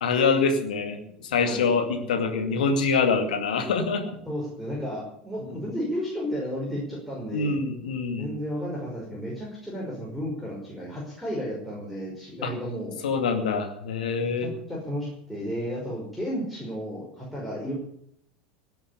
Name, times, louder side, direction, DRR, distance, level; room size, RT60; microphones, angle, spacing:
voice 1, 0.0-4.1 5.5-5.6 7.3-8.3 12.4-12.5 13.0-14.5, left 4 dB, 65° left, 5 dB, 2.4 m, -25 dB
voice 2, 1.4-2.3 4.3-7.6 8.2-13.0 14.2-17.7, equal, ahead, -5 dB, 5.6 m, -33 dB
17.5 x 7.9 x 8.5 m, 0.70 s
figure-of-eight pair, 80°, 5 cm